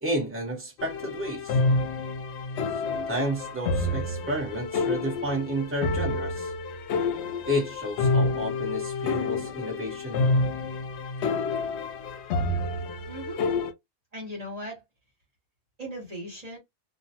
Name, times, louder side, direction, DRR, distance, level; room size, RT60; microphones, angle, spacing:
voice 1, 0.0-1.6 2.8-6.5 7.4-10.3, equal, 10° right, 1.1 m, -31 dB
sound 1, 0.8-13.7, left 3 dB, 85° left, 0.9 m, -28 dB
voice 2, 13.1-13.5 14.1-14.8 15.8-16.6, equal, 40° right, 1.1 m, -38 dB
2.4 x 2.2 x 2.7 m
omnidirectional pair, 1.1 m